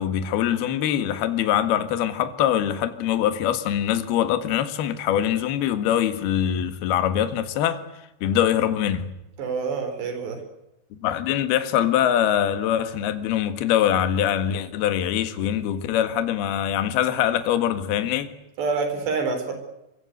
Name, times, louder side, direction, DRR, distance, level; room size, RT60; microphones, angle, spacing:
voice 1, 0.0-7.8 8.2-9.1 11.0-18.3, left 10 dB, 60° left, 3.2 m, -23 dB
voice 2, 9.4-10.4 18.6-19.5, right 4 dB, 60° right, 6.2 m, -27 dB
25.0 x 23.0 x 8.1 m
omnidirectional pair, 5.6 m